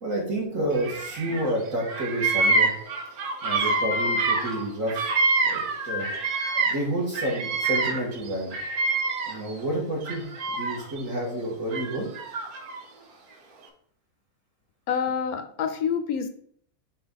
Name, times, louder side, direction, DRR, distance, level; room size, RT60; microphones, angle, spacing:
voice 1, 0.0-2.7 3.4-5.1 5.4-6.1 6.6-8.6 9.3-12.1, right 1 dB, 60° right, -3 dB, 2.2 m, -29 dB
Bird vocalization bird call bird song, 0.8-1.5 1.8-6.9 7.1-9.5 10.0-11.0 11.7-12.8, right 3 dB, 85° right, 1.4 m, -26 dB
voice 2, 14.9-16.3, left 7 dB, 75° left, 8 dB, 1.2 m, -27 dB
5.3 x 4.5 x 4.0 m, 0.63 s
omnidirectional pair, 1.6 m